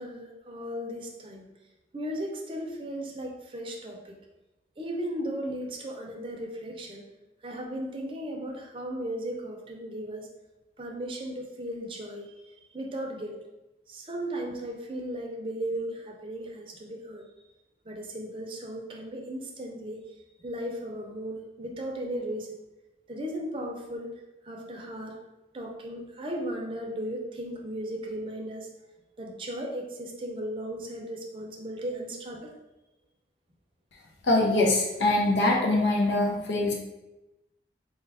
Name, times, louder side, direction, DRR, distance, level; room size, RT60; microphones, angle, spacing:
voice 1, 0.0-1.5 1.9-4.2 4.8-7.0 7.4-10.3 10.8-13.4 13.9-17.3 17.8-20.0 20.4-22.6 23.1-24.1 24.4-25.2 25.5-28.7 29.2-32.5, right 1 dB, 30° right, 0 dB, 0.5 m, -36 dB
voice 2, 34.2-36.7, left 2 dB, 85° left, 0 dB, 0.6 m, -23 dB
4.2 x 2.4 x 3.3 m, 1.0 s
head